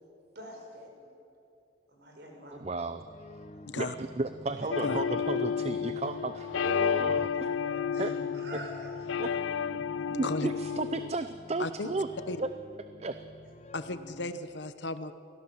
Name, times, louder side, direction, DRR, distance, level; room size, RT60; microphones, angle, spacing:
voice 1, 0.3-1.0 1.9-2.6 7.9-8.9, equal, 60° right, 1 dB, 5.1 m, -46 dB
sound 1, 2.5-14.3, left 1 dB, 35° left, 0.7 m, -49 dB
voice 2, 2.5-3.0 3.8-7.5 8.0-8.1 9.2-9.4 10.1-12.1 12.4-12.5 13.0-13.2, right 3 dB, 35° right, 10 dB, 0.5 m, -34 dB
sound 2, 4.7-11.1, left 7 dB, 90° left, 0.4 m, -31 dB
voice 3, 10.1-10.5 11.6-11.9 12.3-12.4 13.7-15.1, left 2 dB, 65° left, 12 dB, 1.0 m, -35 dB
23.5 x 16.5 x 7.4 m, 2.6 s
head